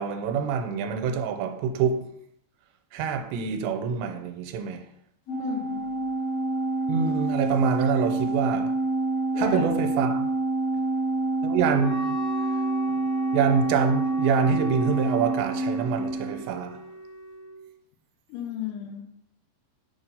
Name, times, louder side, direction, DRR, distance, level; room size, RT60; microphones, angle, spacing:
voice 1, 0.0-2.1 2.9-4.9 6.9-8.8 9.4-10.3 11.4-12.2 13.3-16.8, right 6 dB, 85° right, 2.8 m, -26 dB
Organ, 5.3-16.5, right 2 dB, 65° left, 1.9 m, -27 dB
voice 2, 5.4-5.8 9.3-9.7 18.3-19.0, left 9 dB, 80° left, 3.0 m, -33 dB
Wind instrument woodwind instrument, 11.8-17.6, left 1 dB, 5° left, 0.8 m, -40 dB
7.1 x 2.9 x 5.4 m
omnidirectional pair, 4.9 m